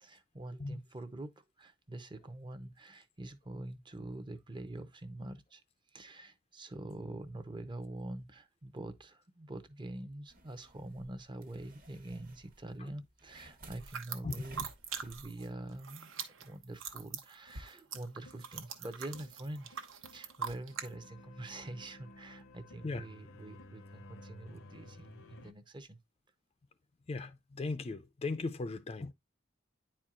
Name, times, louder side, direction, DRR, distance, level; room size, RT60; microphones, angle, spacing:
voice 1, 0.0-5.6 5.9-14.7 15.0-26.0, right 1 dB, 25° right, 0.6 m, -45 dB
sound 1, 10.3-15.3, right 1 dB, 45° right, 1.0 m, -56 dB
sound 2, 13.8-15.5 15.7-20.9, right 7 dB, 75° right, 0.9 m, -43 dB
sound 3, 17.5-25.5, left 1 dB, 75° left, 0.7 m, -55 dB
voice 2, 27.1-29.1, left 3 dB, 30° left, 0.4 m, -37 dB
9.6 x 4.4 x 2.4 m
head